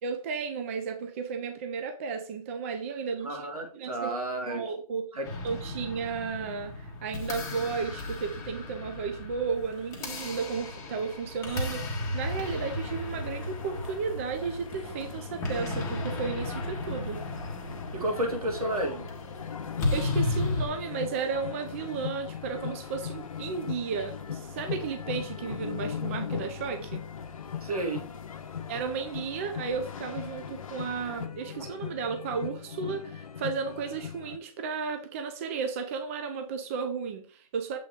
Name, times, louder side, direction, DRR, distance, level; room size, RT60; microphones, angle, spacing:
voice 1, 0.0-3.5 3.7-4.1 4.4-5.0 5.4-17.2 19.9-27.0 28.7-37.8, right 5 dB, 25° right, 0.5 m, -34 dB
voice 2, 3.2-4.6 5.1-5.3 17.9-19.1 27.6-28.1, right 1 dB, 80° right, 2.3 m, -31 dB
sound 1, 5.2-20.7, left 2 dB, 15° left, 1.2 m, -34 dB
sound 2, 12.2-31.3, left 5 dB, 65° left, 1.0 m, -45 dB
sound 3, 19.4-34.4, left 8 dB, 85° left, 0.7 m, -39 dB
7.3 x 3.7 x 3.5 m
hypercardioid pair, 160°, 19 cm